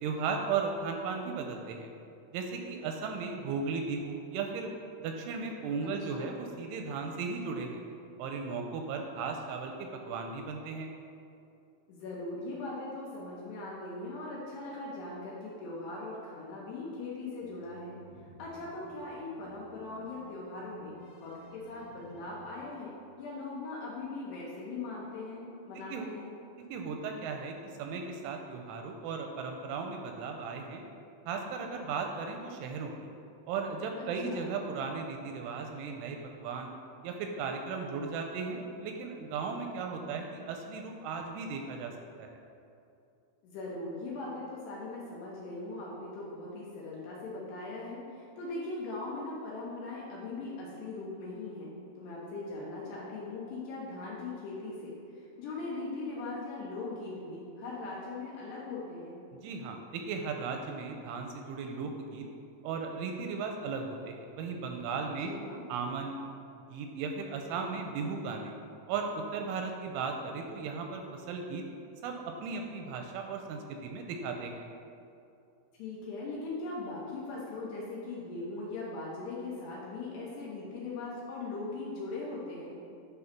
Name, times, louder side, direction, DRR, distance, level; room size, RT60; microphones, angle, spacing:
voice 1, 0.0-1.9 2.3-4.7 5.0-7.8 8.2-10.9 25.9-26.1 26.7-30.8 31.3-33.1 33.5-36.7 37.0-41.9 42.2-42.3 59.4-62.3 62.6-65.3 65.7-66.2 66.7-68.5 68.9-71.6 72.0-74.6, right 5 dB, 85° right, 3 dB, 2.9 m, -36 dB
voice 2, 5.8-6.3 11.9-18.0 18.4-26.4 34.0-34.5 43.4-59.2 65.2-65.6 75.8-82.8, left 2 dB, 75° left, -5 dB, 2.6 m, -40 dB
sound 1, 17.4-22.4, left 1 dB, 55° left, 3.3 m, -55 dB
10.0 x 3.8 x 5.8 m, 2.6 s
omnidirectional pair, 5.7 m